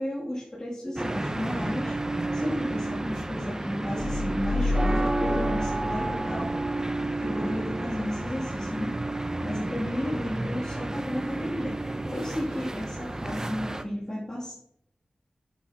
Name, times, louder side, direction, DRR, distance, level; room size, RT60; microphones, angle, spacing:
voice 1, 0.0-1.9 2.3-6.5 7.2-9.0 9.4-14.5, left 1 dB, 25° left, -8 dB, 2.6 m, -33 dB
sound 1, 1.0-13.8, right 2 dB, 25° right, 0.6 m, -31 dB
sound 2, 4.0-7.0, left 2 dB, 70° left, 1.5 m, -30 dB
9.5 x 7.2 x 2.9 m, 0.70 s
wide cardioid pair, 65°, 3 cm